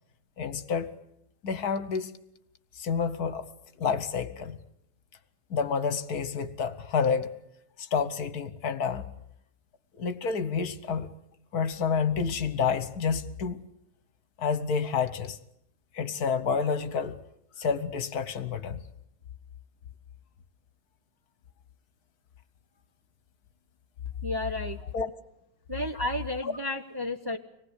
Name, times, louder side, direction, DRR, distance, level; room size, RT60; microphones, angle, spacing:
voice 1, 0.4-0.9 1.4-2.2 2.7-3.5 3.8-4.6 5.5-7.3 7.8-9.0 9.9-11.1 11.5-13.6 14.4-15.4 15.9-17.2 17.6-18.8 24.9-25.1 26.4-26.5, left 6 dB, 70° left, 12 dB, 1.6 m, -29 dB
voice 2, 24.2-24.8 25.7-27.4, left 1 dB, 20° right, 4 dB, 0.9 m, -32 dB
25.5 x 19.0 x 8.3 m, 0.78 s
omnidirectional pair, 1.7 m